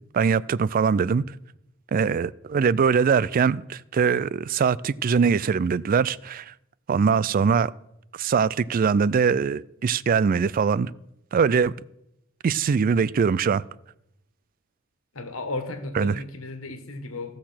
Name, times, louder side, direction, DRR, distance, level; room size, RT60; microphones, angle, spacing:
voice 1, 0.1-1.2 1.9-6.5 6.9-7.7 8.2-10.9 11.3-11.7 12.4-13.6 16.0-16.1, right 6 dB, 45° right, 0.3 m, -22 dB
voice 2, 7.0-7.5 15.1-17.4, left 2 dB, 90° left, 1.7 m, -35 dB
15.5 x 6.6 x 5.8 m
head